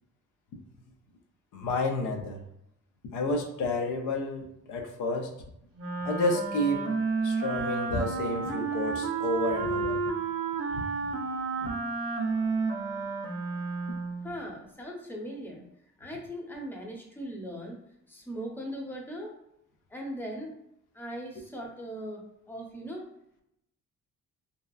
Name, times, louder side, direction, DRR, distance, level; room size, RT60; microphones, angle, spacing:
voice 1, 1.5-2.4 3.1-5.3 6.0-6.9 7.2-10.0 10.7-10.8 11.6-11.7, left 2 dB, 90° left, 3 dB, 0.6 m, -30 dB
Wind instrument woodwind instrument, 5.8-14.3, right 4 dB, 50° right, 0.6 m, -31 dB
voice 2, 14.2-15.6 16.0-17.8 18.1-19.3 19.9-20.6 20.9-23.0, equal, 5° left, 0 dB, 0.7 m, -39 dB
2.7 x 2.3 x 2.3 m, 0.79 s
cardioid pair, 90°, 30 cm